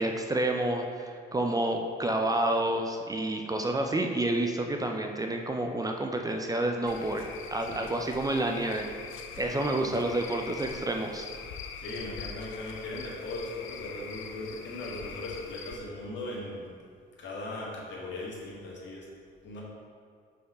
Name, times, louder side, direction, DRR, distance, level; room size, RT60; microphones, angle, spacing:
voice 1, 0.0-7.2 7.5-8.9 9.4-11.3, right 1 dB, 20° right, 3 dB, 0.5 m, -29 dB
Cricket / Frog, 6.9-15.8, left 6 dB, 90° left, 0.5 m, -43 dB
voice 2, 9.3-10.0 11.8-16.6 17.2-19.1 19.4-19.6, left 2 dB, 65° left, -4 dB, 1.7 m, -39 dB
5.5 x 4.2 x 5.4 m, 2.1 s
cardioid pair, 90°, 20 cm